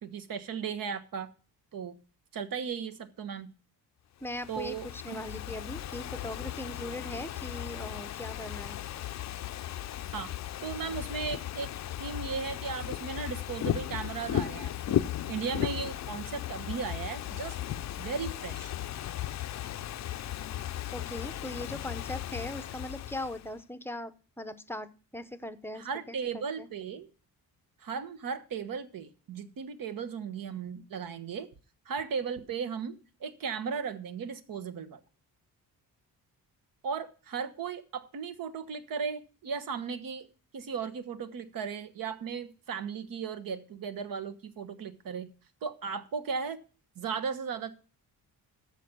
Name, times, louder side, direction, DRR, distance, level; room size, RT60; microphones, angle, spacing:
voice 1, 0.0-1.3 1.7-2.0 2.3-3.5 4.5-5.2 10.1-10.3 10.6-11.7 12.0-15.0 15.3-17.5 18.0-18.7 25.7-27.1 27.8-31.5 31.9-35.0 36.8-40.3 40.5-45.3 45.6-46.6 47.0-47.7, right 6 dB, 65° right, 11 dB, 1.3 m, -36 dB
Ocean / Fireworks, 4.2-23.5, left 12 dB, 50° left, 0.5 m, -36 dB
voice 2, 4.2-8.8 20.9-26.7, left 1 dB, 5° left, 12 dB, 0.6 m, -40 dB
14.0 x 5.2 x 6.8 m, 0.37 s
wide cardioid pair, 145°, 36 cm